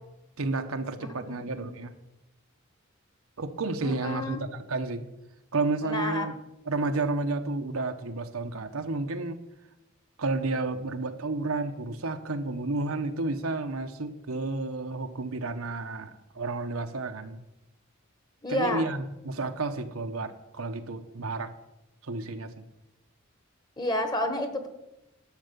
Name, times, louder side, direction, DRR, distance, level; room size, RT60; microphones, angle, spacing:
voice 1, 0.4-1.9 3.4-5.1 5.5-6.3 6.7-9.4 10.2-17.4 18.5-21.5 22.0-22.6, right 3 dB, 90° right, 7 dB, 1.0 m, -31 dB
voice 2, 1.0-1.7 3.8-4.4 5.8-6.3 18.4-18.9 23.8-24.7, left 1 dB, 20° left, 7 dB, 1.2 m, -30 dB
11.5 x 6.8 x 6.8 m, 0.95 s
head